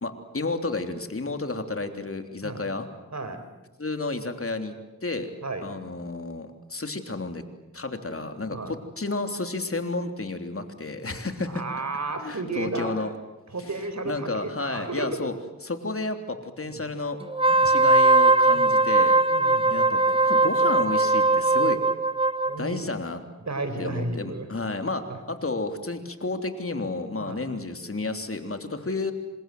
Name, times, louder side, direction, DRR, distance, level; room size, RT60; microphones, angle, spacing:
voice 1, 0.0-2.9 3.8-5.3 5.6-7.4 7.7-11.6 12.2-13.1 14.0-15.3 15.6-17.2 17.6-19.2 19.7-21.8 22.6-23.2 23.8-29.1, left 3 dB, 50° left, 7 dB, 3.4 m, -31 dB
voice 2, 3.1-3.5 5.4-5.7 8.5-8.7 11.5-12.9 13.5-15.2 16.6-16.8 17.5-17.7 18.5-18.8 19.3-19.8 22.4-22.9 23.4-24.5 25.1-25.2 27.2-27.5, right 3 dB, 65° right, 9 dB, 4.6 m, -33 dB
Wind instrument woodwind instrument, 17.3-22.6, right 2 dB, 20° right, 1.1 m, -20 dB
28.0 x 27.0 x 7.9 m, 1.1 s
cardioid pair, 50°, 30 cm